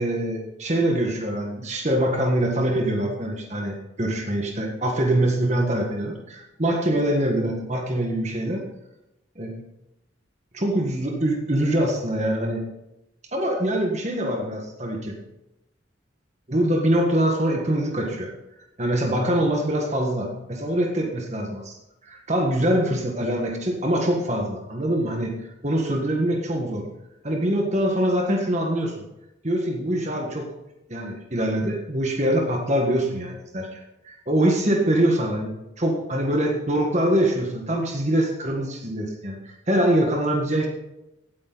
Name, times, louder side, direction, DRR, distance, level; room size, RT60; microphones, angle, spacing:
voice 1, 0.0-8.6 9.4-9.6 10.5-12.6 13.3-15.2 16.5-18.3 18.8-21.8 22.0-26.9 27.2-28.9 29.4-30.5 30.9-39.4 39.7-40.7, right 1 dB, 35° right, 1 dB, 1.6 m, -24 dB
17.0 x 8.9 x 4.1 m, 0.91 s
head